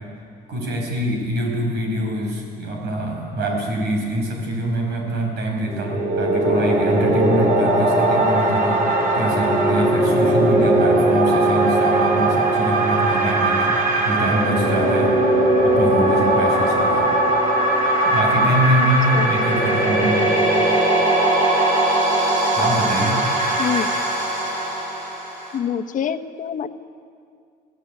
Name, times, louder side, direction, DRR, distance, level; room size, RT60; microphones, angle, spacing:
voice 1, 0.5-8.8 9.1-15.1 15.6-17.1 18.0-20.3 22.6-23.2, right 1 dB, 75° right, 1 dB, 7.7 m, -24 dB
sound 1, 5.7-25.6, right 1 dB, 55° right, 5.4 m, -19 dB
voice 2, 23.6-23.9 25.5-26.7, left 8 dB, 50° left, 7 dB, 1.2 m, -25 dB
25.0 x 17.0 x 9.6 m, 2.3 s
cardioid pair, 110°, 17 cm